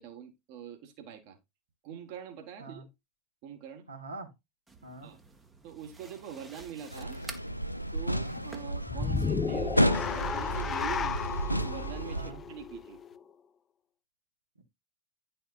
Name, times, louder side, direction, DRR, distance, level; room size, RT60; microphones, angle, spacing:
voice 1, 0.0-1.4 1.8-2.9 3.4-3.8 5.0-5.2 5.6-7.2 7.9-11.2 11.5-13.0, right 8 dB, 45° right, 1.5 m, -43 dB
voice 2, 3.9-4.3 4.8-5.1 8.1-8.3 11.0-11.1 12.1-12.4, right 2 dB, 80° right, 1.7 m, -44 dB
sound 1, 4.7-9.8, right 3 dB, 10° right, 1.0 m, -50 dB
sound 2, 6.9-12.3, equal, 90° left, 0.4 m, -32 dB
sound 3, 8.9-13.2, left 4 dB, 20° left, 0.5 m, -33 dB
10.5 x 4.3 x 2.5 m
figure-of-eight pair, 90°, 0 cm